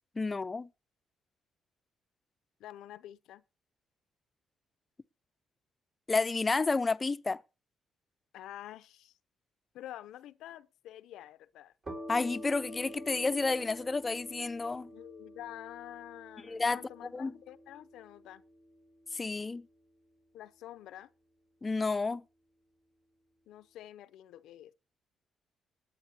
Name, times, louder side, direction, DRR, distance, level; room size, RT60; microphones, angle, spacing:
voice 1, 0.2-0.7 6.1-7.4 12.1-14.9 16.5-16.8 17.1-17.3 19.1-19.7 21.6-22.2, left 3 dB, 25° left, 0.5 m, -30 dB
voice 2, 2.6-3.4 8.3-9.2 9.7-11.7 14.9-18.4 20.3-21.1 23.5-24.7, left 13 dB, 85° left, 0.5 m, -48 dB
sound 1, 11.8-19.3, equal, 40° right, 3.8 m, -48 dB
19.5 x 9.6 x 2.8 m
cardioid pair, 90°, 0 cm